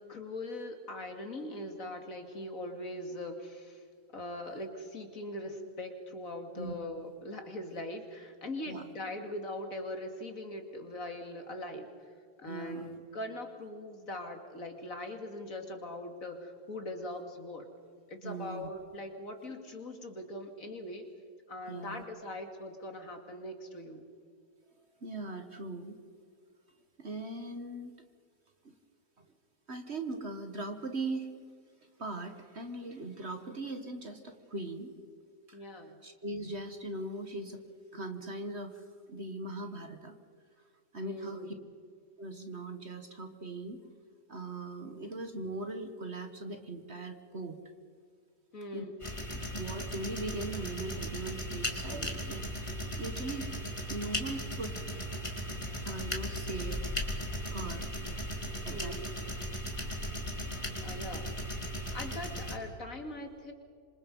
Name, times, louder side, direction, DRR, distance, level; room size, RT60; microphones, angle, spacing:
voice 1, 0.0-3.8 4.1-12.1 12.4-17.7 18.1-21.1 21.5-24.0 35.5-36.0 41.0-41.6 48.5-48.9 58.7-59.0 59.4-59.5 60.8-61.3 61.9-63.5, left 1 dB, 55° left, 5 dB, 2.8 m, -41 dB
voice 2, 12.5-12.9 18.2-18.7 21.7-22.0 25.0-26.0 27.0-28.0 28.6-28.7 29.2-29.3 29.7-31.3 32.0-34.9 35.5-35.6 36.0-37.6 37.9-40.2 40.9-41.4 42.2-43.8 44.3-47.6 48.7-48.8 49.3-53.5 53.9-54.8 55.8-56.8 57.5-57.9 58.6-59.0, right 2 dB, 40° right, 7 dB, 1.6 m, -40 dB
sound 1, 49.0-62.6, equal, 20° left, 2.6 m, -37 dB
27.0 x 26.0 x 5.4 m, 2.1 s
omnidirectional pair, 1.8 m